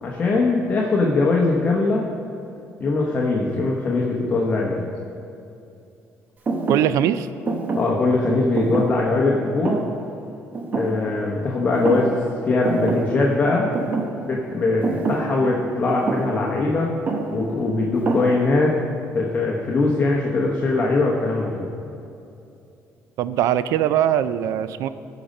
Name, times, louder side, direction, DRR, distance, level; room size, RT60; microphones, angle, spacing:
voice 1, 0.0-2.1 2.8-4.9 7.7-9.8 10.7-12.1 12.4-13.7 14.2-16.9 17.3-18.7 19.1-21.6, left 3 dB, 25° left, -2 dB, 1.1 m, -21 dB
Thump thud, 6.5-11.5 11.7-12.4 12.6-18.8, right 3 dB, 30° right, 0.9 m, -28 dB
voice 2, 6.7-7.3 23.2-24.9, right 11 dB, 75° right, 14 dB, 0.4 m, -21 dB
15.0 x 5.1 x 5.3 m, 2.7 s
cardioid pair, 145°, 5 cm